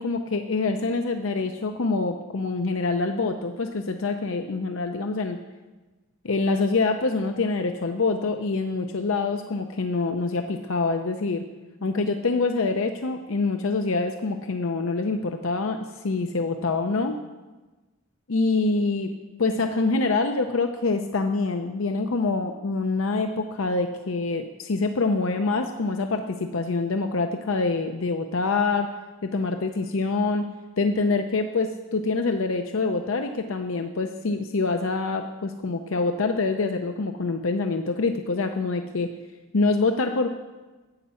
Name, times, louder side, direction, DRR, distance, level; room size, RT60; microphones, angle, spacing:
voice 1, 0.0-5.4 6.2-11.4 11.8-15.8 16.0-17.2 18.3-19.1 19.4-28.9 29.2-30.5 30.8-39.1 39.5-40.3, left 3 dB, 65° left, 6 dB, 0.6 m, -25 dB
9.7 x 8.6 x 7.0 m, 1.2 s
head